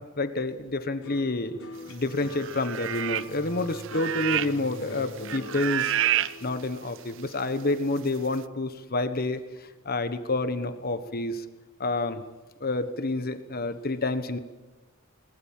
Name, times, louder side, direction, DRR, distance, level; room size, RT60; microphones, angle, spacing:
voice 1, 0.0-1.5 1.9-5.9 6.4-9.4 9.8-11.4 11.8-12.2 12.6-14.4, left 2 dB, 45° left, 10 dB, 1.4 m, -29 dB
sound 1, 1.0-9.5 9.8-10.4, left 1 dB, 80° left, 3.5 m, -43 dB
sound 2, 2.3-3.4 3.7-4.7 5.0-6.3 7.0-7.1, right 12 dB, 60° right, 0.6 m, -28 dB
21.0 x 20.0 x 7.7 m, 1.2 s
head